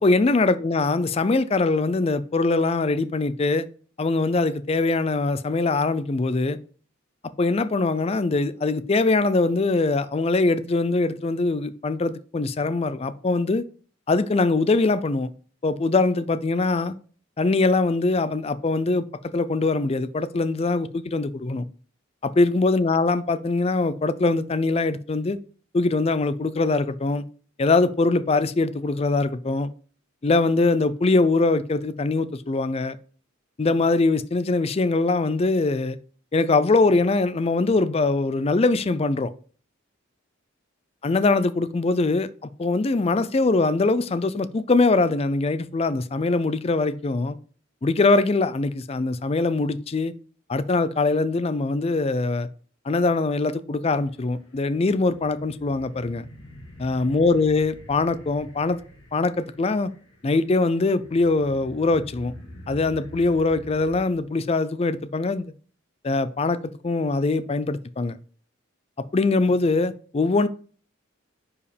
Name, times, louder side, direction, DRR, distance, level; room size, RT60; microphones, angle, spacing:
voice 1, 0.0-3.7 4.0-6.6 7.4-13.6 14.1-15.3 15.6-17.0 17.4-19.0 19.3-21.7 22.2-25.4 25.7-27.2 27.6-29.7 30.2-33.0 33.6-36.0 36.3-39.3 41.0-42.3 42.6-47.4 47.8-50.1 50.5-52.5 52.9-56.2 56.8-58.8 59.1-59.9 60.2-62.3 62.7-65.5 66.0-66.6 66.8-68.2 69.1-70.5, left 3 dB, 30° left, 0.4 m, -22 dB
sound 1, 54.0-64.1, equal, 60° left, 2.3 m, -46 dB
10.0 x 4.8 x 3.4 m
head